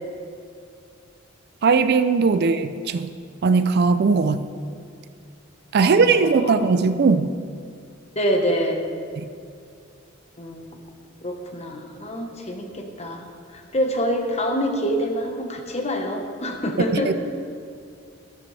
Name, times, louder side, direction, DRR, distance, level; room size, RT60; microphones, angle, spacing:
voice 1, 1.6-3.1 3.4-4.5 5.7-7.3 9.2-9.3 16.9-17.1, right 4 dB, 50° right, 11 dB, 0.4 m, -19 dB
voice 2, 5.8-6.7 8.1-8.9 10.4-10.7 11.2-17.1, equal, 30° left, 3 dB, 1.1 m, -26 dB
13.5 x 12.0 x 3.3 m, 2.3 s
head